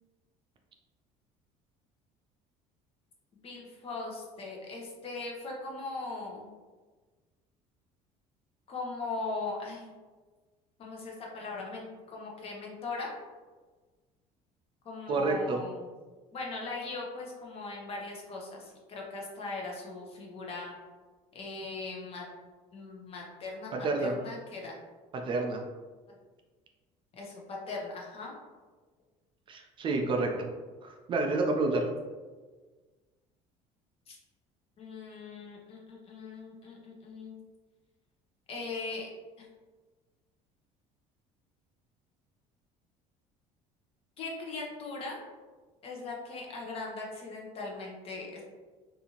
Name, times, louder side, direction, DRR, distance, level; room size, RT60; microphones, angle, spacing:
voice 1, 3.4-6.5 8.7-9.9 10.8-13.1 14.8-15.9 16.3-20.7 21.3-22.2 22.7-23.7 24.0-24.8 27.2-28.3 34.1-34.2 34.8-37.4 38.5-39.1 39.4-39.5 44.2-45.2 45.8-48.4, left 3 dB, 45° left, -2 dB, 0.8 m, -39 dB
voice 2, 15.1-15.6 23.7-24.1 25.1-25.6 29.5-30.5 30.8-31.9, right 3 dB, 35° right, 3 dB, 0.4 m, -29 dB
2.7 x 2.4 x 2.8 m, 1.4 s
cardioid pair, 120°, 14 cm